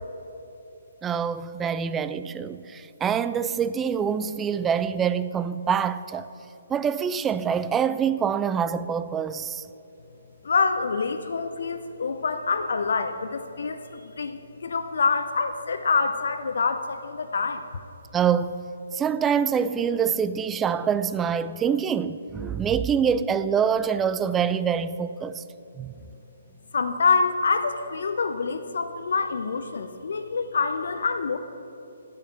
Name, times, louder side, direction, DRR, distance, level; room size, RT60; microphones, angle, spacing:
voice 1, 1.0-6.3 6.7-9.6 18.1-18.6 18.9-25.4 25.8-25.9, right 7 dB, 15° right, 0.3 m, -25 dB
voice 2, 10.4-17.6 26.7-31.4, left 4 dB, 60° left, 0.6 m, -26 dB
9.4 x 9.0 x 7.0 m
figure-of-eight pair, 135°, 0 cm